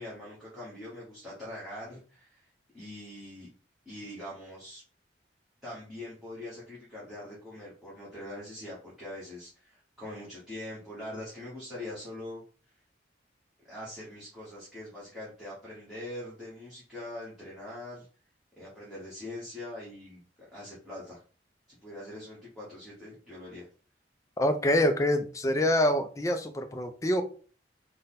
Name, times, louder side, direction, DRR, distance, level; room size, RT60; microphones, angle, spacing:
voice 1, 0.0-2.5 2.7-3.5 3.8-4.8 5.6-12.4 13.7-18.1 18.6-20.2 20.5-21.2 21.7-23.7, left 1 dB, ahead, 1.2 m, -43 dB
voice 2, 24.4-27.2, left 1 dB, 15° left, 0.4 m, -26 dB
3.7 x 2.2 x 4.0 m
head